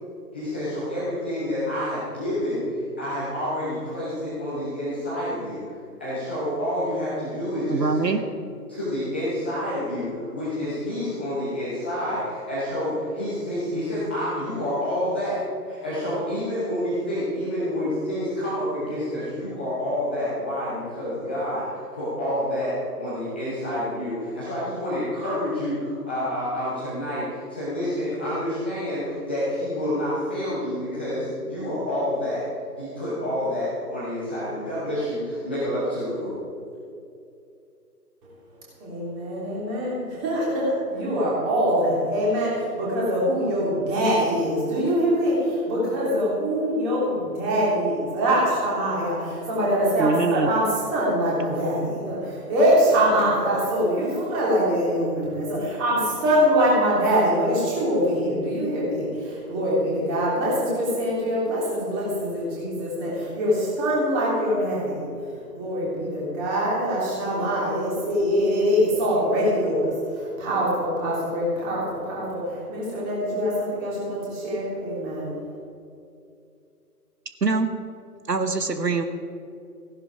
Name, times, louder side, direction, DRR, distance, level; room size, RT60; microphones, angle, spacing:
voice 1, 0.3-5.6 6.0-8.1 8.7-15.4 15.6-32.4 32.8-36.3, left 1 dB, 5° left, -12 dB, 0.8 m, -28 dB
voice 2, 7.7-8.2 50.0-50.5 77.4-77.7 78.3-79.0, right 4 dB, 80° right, 9 dB, 1.1 m, -23 dB
voice 3, 38.8-40.0 40.2-42.5 42.8-45.4 45.7-49.2 49.5-52.2 52.5-59.0 59.5-65.0 65.6-69.9 70.4-72.4 72.7-74.2 74.4-75.3, equal, 15° right, -6 dB, 3.2 m, -23 dB
15.5 x 11.0 x 4.9 m, 2.5 s
figure-of-eight pair, 145°, 49 cm